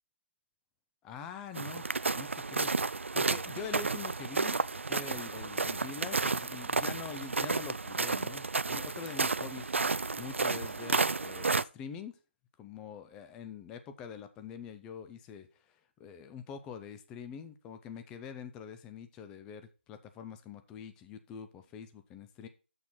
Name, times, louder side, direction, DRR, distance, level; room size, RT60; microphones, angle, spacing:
voice 1, 1.0-1.9 2.1-9.9 10.2-12.1 12.6-15.5 16.0-22.5, left 7 dB, 10° left, 0.5 m, -45 dB
sound 1, 1.5-11.6, right 4 dB, 85° right, 0.4 m, -32 dB
7.1 x 6.4 x 4.3 m
figure-of-eight pair, 160°, 7 cm